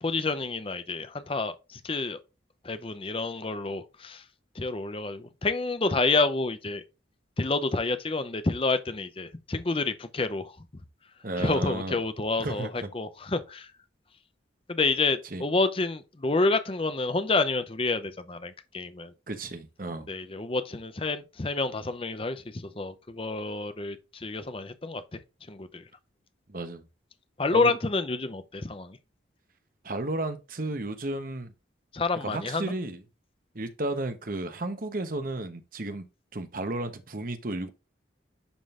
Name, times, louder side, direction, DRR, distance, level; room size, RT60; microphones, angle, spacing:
voice 1, 0.0-2.2 2.6-4.2 4.6-6.8 7.4-10.5 11.4-13.7 14.7-19.1 20.1-25.2 25.5-25.8 27.4-29.0 31.9-32.7, left 3 dB, 30° left, 0.7 m, -29 dB
voice 2, 11.2-12.0 12.4-12.9 15.3-15.4 19.3-20.1 26.5-26.8 27.5-27.7 29.8-31.5 32.2-33.0 33.5-36.0 36.3-37.7, right 2 dB, 45° right, 1.0 m, -33 dB
11.5 x 3.8 x 2.5 m
head